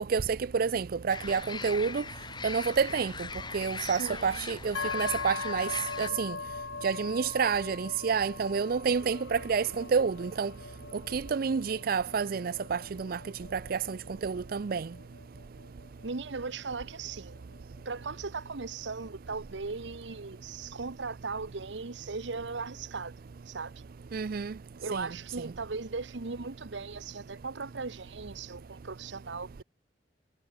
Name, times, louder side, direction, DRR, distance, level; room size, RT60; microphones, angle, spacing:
voice 1, 0.1-2.0 2.4-3.1 3.5-5.7 6.0-6.4 6.8-10.5 11.1-13.2 13.5-14.0 14.2-14.9 24.1-24.5 24.9-25.1, right 5 dB, 55° right, 0.4 m, -29 dB
sound 1, 1.1-6.1, left 4 dB, 25° left, 1.4 m, -40 dB
voice 2, 3.8-4.5 16.0-17.4 17.8-23.1 23.5-23.7 24.8-29.6, right 4 dB, 85° right, 1.1 m, -38 dB
sound 2, 4.7-18.4, left 4 dB, 90° left, 1.7 m, -41 dB
sound 3, 8.1-14.6, left 2 dB, 65° left, 3.8 m, -57 dB
head